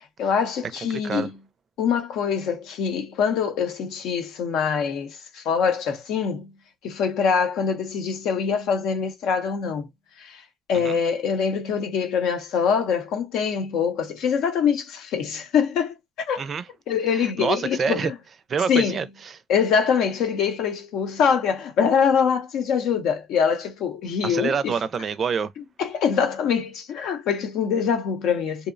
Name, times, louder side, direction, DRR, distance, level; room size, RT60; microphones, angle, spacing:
voice 1, 0.2-1.3 1.8-6.5 6.8-9.9 10.2-10.4 10.7-16.4 16.9-18.1 18.7-19.0 19.5-24.7 25.8-28.7, left 6 dB, 75° left, 0.6 m, -24 dB
voice 2, 0.9-1.3 10.7-11.0 16.4-16.7 17.1-18.1 18.5-19.4 24.2-25.5, right 6 dB, 45° right, 0.4 m, -27 dB
2.7 x 2.0 x 2.5 m
cardioid pair, 95°, 0 cm